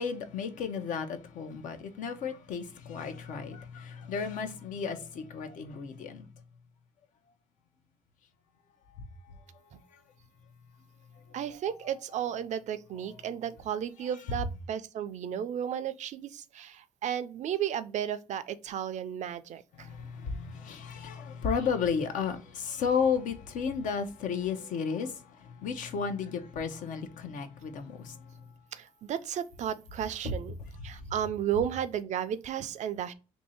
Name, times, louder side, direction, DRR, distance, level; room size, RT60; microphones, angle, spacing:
voice 1, 0.0-6.2 19.8-25.2 25.6-28.2, left 6 dB, 75° left, 0.7 m, -33 dB
voice 2, 11.3-19.9 28.7-30.5 30.8-33.1, right 9 dB, 60° right, 0.4 m, -34 dB
2.7 x 2.7 x 4.2 m
cardioid pair, 70°, 13 cm